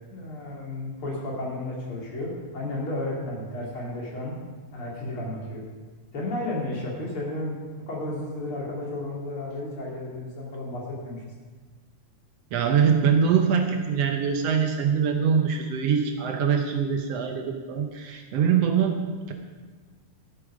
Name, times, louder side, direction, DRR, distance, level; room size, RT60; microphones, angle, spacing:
voice 1, 0.1-4.4 4.7-5.6 6.1-7.6 7.9-11.2, left 1 dB, 45° left, -4 dB, 3.5 m, -33 dB
voice 2, 12.5-19.0 19.3-19.4, right 7 dB, 70° right, 4 dB, 1.7 m, -23 dB
14.5 x 8.4 x 5.1 m, 1.4 s
omnidirectional pair, 3.7 m